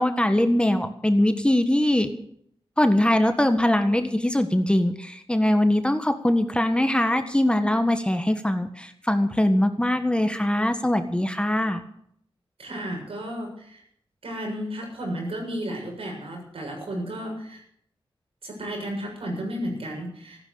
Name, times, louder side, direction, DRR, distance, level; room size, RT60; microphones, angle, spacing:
voice 1, 0.0-2.1 2.8-11.8, left 1 dB, 10° left, 8 dB, 1.5 m, -22 dB
voice 2, 12.6-13.8 14.2-17.6 18.4-20.4, equal, 80° right, 1 dB, 6.9 m, -33 dB
15.0 x 12.5 x 7.1 m, 0.68 s
wide cardioid pair, 90°, 10 cm